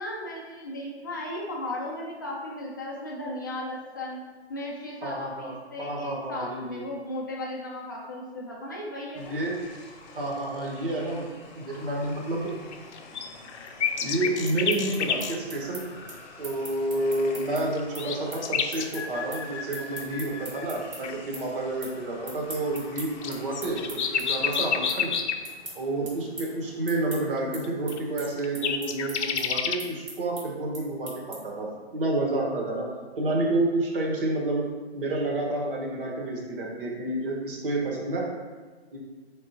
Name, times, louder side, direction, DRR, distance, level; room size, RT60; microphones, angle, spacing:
voice 1, 0.0-4.2 4.5-9.3, left 1 dB, 20° left, -4 dB, 0.4 m, -36 dB
voice 2, 5.0-6.8 9.1-9.6 10.1-11.2 11.5-12.5 14.0-15.9 16.4-25.1 25.7-32.9 33.2-34.6 34.9-38.2 38.9-39.0, right 2 dB, 55° right, -2 dB, 1.3 m, -29 dB
sound 1, 9.1-26.5, left 3 dB, 40° left, 0.8 m, -48 dB
sound 2, 12.5-15.4 17.3-20.6 21.0-21.2 22.5-25.5 27.4-27.5 27.6-27.7 27.9-29.8, left 7 dB, 85° left, 0.6 m, -30 dB
sound 3, 14.4-21.0 21.3-21.9 22.2-31.6, right 2 dB, 25° right, 1.1 m, -41 dB
4.8 x 3.6 x 2.8 m, 1.3 s
hypercardioid pair, 160°, 33 cm